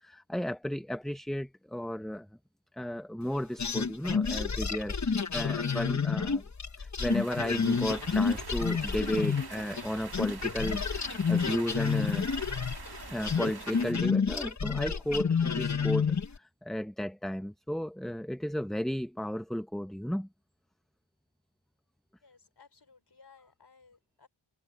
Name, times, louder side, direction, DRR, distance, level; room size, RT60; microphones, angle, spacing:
voice 1, 0.0-2.3 2.8-6.4 6.8-12.3 13.1-16.1 16.4-20.3, equal, ahead, 0.8 m, -34 dB
sound 1, 3.6-9.9 10.1-16.4, left 5 dB, 35° left, 1.1 m, -29 dB
sound 2, 7.0-13.9, right 4 dB, 50° right, 2.0 m, -45 dB
voice 2, 22.2-24.3, left 5 dB, 50° left, 5.0 m, -59 dB
cardioid pair, 45°, 49 cm